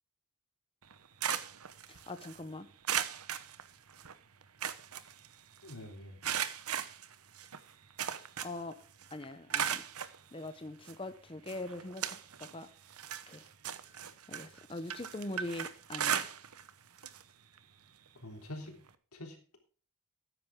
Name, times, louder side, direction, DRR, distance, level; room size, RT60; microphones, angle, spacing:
sound 1, 0.8-2.4 2.8-4.1 4.4-5.7 6.2-8.7 9.0-10.2 10.9-11.0 11.5-12.6 12.9-16.7 17.0-17.2 17.6-17.7 18.9-19.0, right 9 dB, 85° right, 1.0 m, -37 dB
voice 1, 1.9-2.7 8.4-8.8 9.1-9.9 10.3-12.7 13.3-13.5 14.0-16.3, left 2 dB, 25° left, 0.7 m, -43 dB
voice 2, 5.6-6.2 18.1-18.8 19.1-19.6, left 1 dB, 85° left, 3.5 m, -46 dB
13.5 x 10.0 x 3.7 m
head